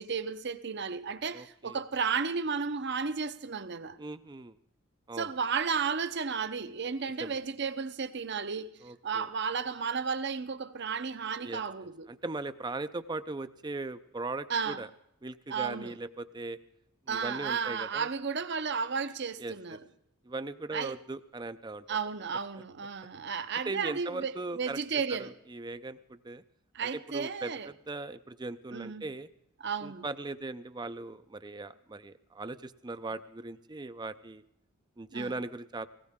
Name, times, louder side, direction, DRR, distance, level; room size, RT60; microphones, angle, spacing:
voice 1, 0.0-4.0 5.2-8.7 9.0-12.1 14.5-14.8 15.5-15.9 17.1-19.8 20.7-20.9 21.9-25.3 26.7-27.7 28.7-29.0 29.6-30.0 35.1-35.3, right 5 dB, 55° right, 0.8 m, -33 dB
voice 2, 1.3-1.8 4.0-4.6 5.1-5.3 7.2-7.4 8.8-9.3 11.4-11.6 12.1-14.9 15.2-16.6 17.1-18.1 19.4-19.8 20.2-21.8 23.7-26.4 26.8-29.3 29.8-34.4 35.0-35.9, right 2 dB, 20° right, 0.5 m, -39 dB
19.0 x 17.5 x 3.7 m
head